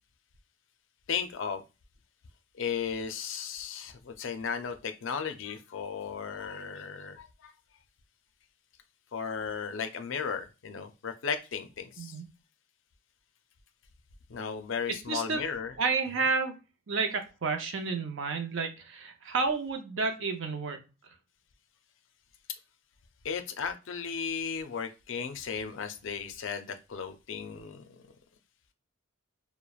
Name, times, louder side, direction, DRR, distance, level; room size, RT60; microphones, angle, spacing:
voice 1, 1.1-1.6 2.6-7.5 9.1-12.1 14.3-15.7 23.2-27.8, left 6 dB, 65° left, 8 dB, 0.4 m, -35 dB
voice 2, 15.1-15.4 15.8-16.5 16.9-20.8, right 4 dB, 65° right, 5 dB, 0.6 m, -30 dB
3.0 x 2.0 x 2.3 m, 0.29 s
head